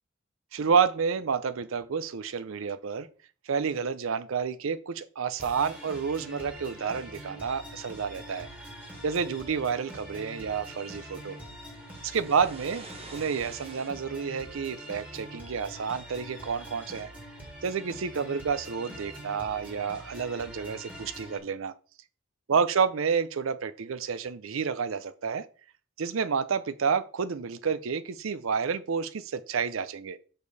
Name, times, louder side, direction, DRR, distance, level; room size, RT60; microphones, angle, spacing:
voice 1, 0.5-3.1 3.5-8.5 9.0-11.4 12.0-12.9 13.1-17.1 17.6-21.7 22.5-25.4 26.0-30.2, right 6 dB, 75° right, 0.5 m, -29 dB
sound 1, 5.4-21.4, right 1 dB, 10° right, 1.7 m, -44 dB
sound 2, 8.8-13.9, right 3 dB, 30° right, 0.9 m, -51 dB
6.5 x 5.2 x 4.0 m
head